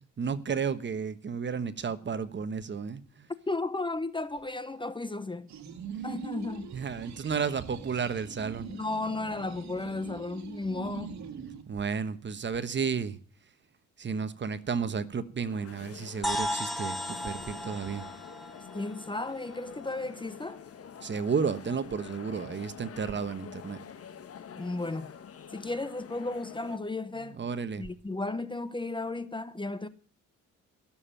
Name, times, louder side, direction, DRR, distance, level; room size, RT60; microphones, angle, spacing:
voice 1, 0.2-3.3 6.7-8.7 11.7-13.2 14.0-18.0 21.0-23.8 27.4-27.8, right 6 dB, 40° right, 1.3 m, -32 dB
voice 2, 3.5-5.5 6.0-6.7 8.7-11.1 18.7-20.6 24.6-25.2 25.5-27.4 27.8-29.9, left 2 dB, 15° left, 0.9 m, -34 dB
sound 1, 5.5-11.6, right 7 dB, 65° right, 2.1 m, -42 dB
sound 2, 15.5-26.8, left 7 dB, 50° left, 1.4 m, -47 dB
sound 3, 16.2-20.0, equal, ahead, 2.1 m, -35 dB
16.0 x 7.3 x 9.1 m
cardioid pair, 90°, 30 cm